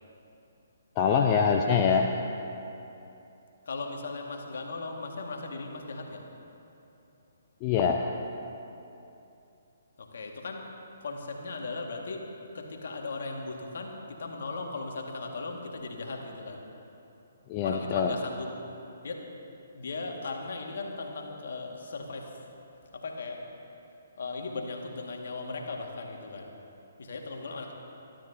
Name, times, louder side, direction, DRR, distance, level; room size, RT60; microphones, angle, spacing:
voice 1, 1.0-2.2 7.6-8.0 17.5-18.1, left 6 dB, 30° left, 2 dB, 0.7 m, -24 dB
voice 2, 3.7-6.2 10.0-16.7 17.6-18.5 19.0-19.2 19.7-22.5 22.9-23.5 24.2-26.5 27.0-27.7, left 3 dB, 60° left, 2 dB, 1.9 m, -37 dB
26.5 x 12.5 x 2.8 m, 2.9 s
figure-of-eight pair, 130°, 0 cm